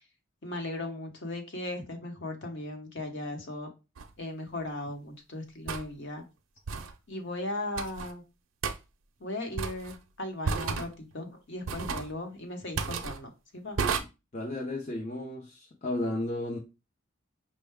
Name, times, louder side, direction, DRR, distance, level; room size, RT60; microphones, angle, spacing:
voice 1, 0.4-3.7 4.2-6.2 7.1-8.2 9.2-13.8, left 1 dB, 55° left, 1.0 m, -37 dB
sound 1, 4.0-4.1 5.7-5.9 6.7-6.9 7.8-8.1 8.6-8.8 9.6-10.0 10.4-10.9 11.7-12.1 12.8-13.2 13.8-14.0, right 5 dB, 65° right, 0.5 m, -32 dB
voice 2, 14.3-16.6, left 1 dB, 30° left, 0.6 m, -33 dB
5.4 x 2.2 x 3.5 m
head